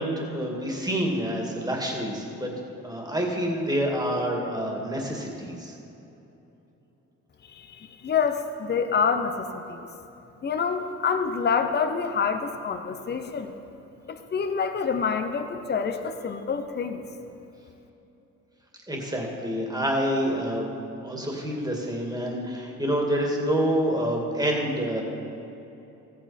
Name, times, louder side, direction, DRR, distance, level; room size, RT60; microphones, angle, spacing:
voice 1, 0.0-2.5 2.8-5.7 18.9-20.7 21.0-25.0, equal, 15° right, 0 dB, 2.1 m, -27 dB
voice 2, 7.4-9.8 10.4-13.5 14.1-17.0, left 6 dB, 35° left, 7 dB, 0.8 m, -27 dB
14.0 x 8.6 x 4.3 m, 2.9 s
cardioid pair, 90°, 30 cm